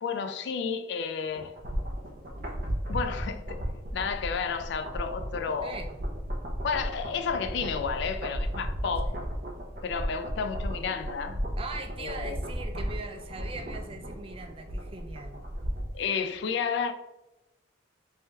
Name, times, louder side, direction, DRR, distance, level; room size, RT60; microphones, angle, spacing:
voice 1, 0.0-1.5 2.9-3.6 3.9-5.8 6.6-9.1 9.8-11.4 12.0-12.4 15.9-16.9, left 6 dB, 60° left, 0.3 m, -31 dB
sound 1, 1.3-16.0 16.3-16.4, equal, 50° right, 0.8 m, -35 dB
voice 2, 11.6-15.4, right 3 dB, 30° right, 0.4 m, -40 dB
3.3 x 2.7 x 3.4 m
head